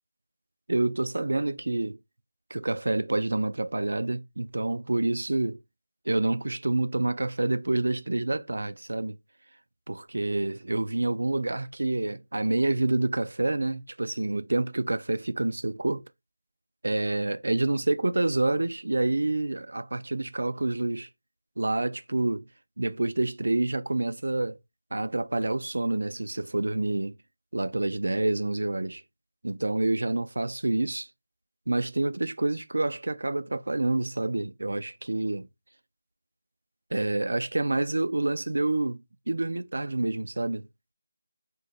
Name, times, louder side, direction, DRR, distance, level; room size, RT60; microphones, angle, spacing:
voice 1, 0.7-2.0 2.5-5.6 6.1-9.2 9.9-16.0 16.8-21.1 21.6-22.5 22.8-24.6 24.9-27.2 27.5-29.0 29.4-31.1 31.7-35.5 36.9-40.7, right 2 dB, 80° right, 0.3 m, -28 dB
2.5 x 2.1 x 3.9 m
figure-of-eight pair, 165°, 0 cm